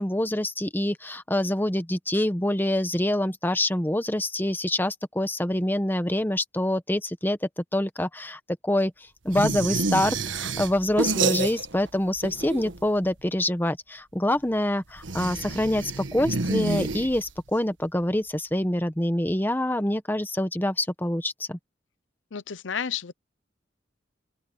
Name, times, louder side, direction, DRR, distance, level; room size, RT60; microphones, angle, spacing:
voice 1, 0.0-8.9 9.2-21.6, left 1 dB, 10° left, 1.1 m, -26 dB
sound 1, 9.3-11.9 12.2-13.0 15.0-17.5, right 3 dB, 90° right, 1.5 m, -29 dB
voice 2, 22.3-23.1, left 7 dB, 80° left, 0.7 m, -31 dB
open air
head